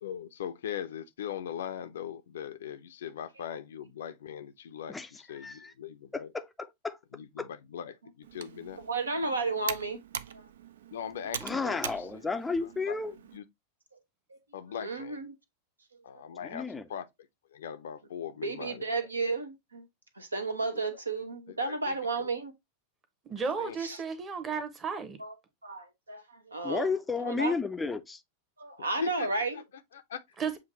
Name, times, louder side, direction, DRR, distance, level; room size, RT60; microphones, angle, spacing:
voice 1, 0.0-6.3 7.1-8.8 10.9-12.1 12.6-13.5 14.5-15.2 16.0-17.1 17.5-19.1 20.6-21.0 21.5-22.3 23.6-23.8 28.8-30.6, left 8 dB, 60° left, 0.5 m, -41 dB
voice 2, 5.4-5.7 6.1-6.4 6.8-7.0 7.4-7.5 11.4-13.1 16.5-16.8 26.6-28.2, left 4 dB, 10° left, 0.4 m, -32 dB
Computer keyboard, 8.2-13.4, right 9 dB, 60° right, 0.3 m, -42 dB
voice 3, 8.9-10.0 10.3-10.4 14.3-14.4 14.8-15.3 18.4-19.9 20.2-22.5 23.8-24.0 25.2-25.3 25.6-26.9 27.2-27.5 28.6-29.5, right 3 dB, 80° right, 0.8 m, -33 dB
voice 4, 23.2-25.2 30.4-30.6, right 5 dB, 25° right, 0.9 m, -33 dB
7.2 x 2.5 x 2.8 m
figure-of-eight pair, 90°, 0 cm